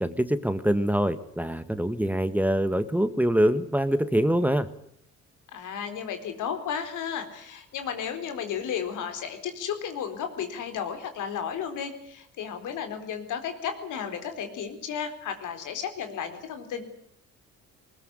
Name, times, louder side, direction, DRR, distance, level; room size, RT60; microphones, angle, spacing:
voice 1, 0.0-4.7, right 1 dB, 5° right, 12 dB, 1.5 m, -24 dB
voice 2, 5.5-16.8, left 7 dB, 85° left, 7 dB, 4.2 m, -33 dB
20.0 x 20.0 x 9.7 m, 0.69 s
cardioid pair, 90°, 30 cm